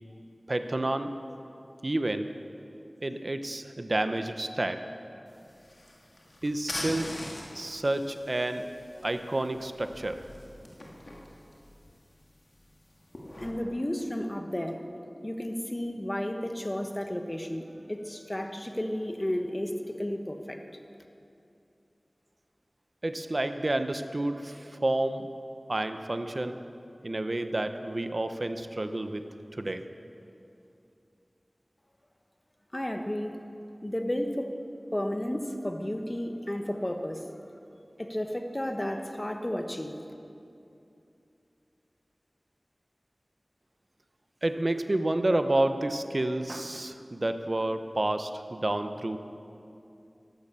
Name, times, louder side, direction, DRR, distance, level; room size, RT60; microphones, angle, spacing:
voice 1, 0.5-1.2 1.8-2.3 3.0-4.9 6.4-7.2 7.5-8.7 9.0-10.2 23.0-25.3 25.7-26.6 27.0-29.2 29.5-29.8 44.4-49.2, right 1 dB, 50° right, 8 dB, 0.8 m, -29 dB
sound 1, 5.3-13.5, left 1 dB, 60° left, 2.1 m, -43 dB
voice 2, 13.4-14.8 15.2-20.6 32.7-33.4 33.8-34.5 34.9-37.2 38.0-40.0, left 1 dB, 25° left, 5 dB, 1.2 m, -32 dB
14.5 x 11.5 x 6.8 m, 2.7 s
wide cardioid pair, 55°, 0 cm